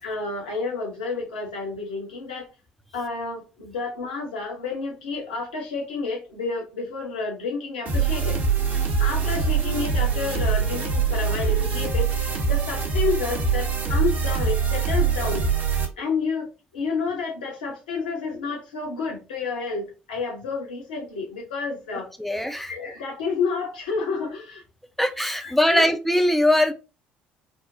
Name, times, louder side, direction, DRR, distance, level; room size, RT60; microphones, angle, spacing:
voice 1, 0.0-2.5 2.9-8.4 9.0-15.5 16.0-16.5 16.7-24.6 25.4-25.9, left 4 dB, 75° left, -1 dB, 0.8 m, -30 dB
sound 1, 7.9-15.9, right 5 dB, 40° right, 0.8 m, -23 dB
voice 2, 22.2-22.7 25.0-26.7, left 1 dB, 5° left, 7 dB, 0.4 m, -21 dB
3.4 x 2.0 x 2.6 m, 0.32 s
figure-of-eight pair, 55°, 5 cm